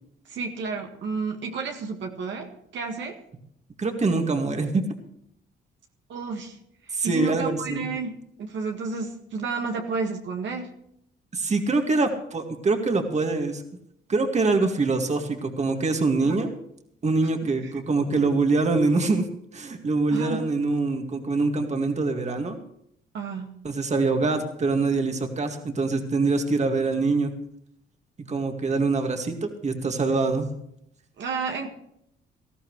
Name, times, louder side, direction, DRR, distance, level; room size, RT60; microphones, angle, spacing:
voice 1, 0.3-3.2 6.1-6.6 6.9-10.7 16.2-16.5 17.4-17.7 20.1-20.4 23.1-23.5 31.2-31.7, right 4 dB, 70° right, 2 dB, 1.9 m, -31 dB
voice 2, 3.8-4.8 6.9-7.9 11.3-13.6 14.1-16.5 17.0-19.3 19.5-22.6 23.6-27.3 28.3-30.5, right 3 dB, 35° right, 4 dB, 2.1 m, -24 dB
18.5 x 14.0 x 3.2 m, 0.73 s
cardioid pair, 90°, 20 cm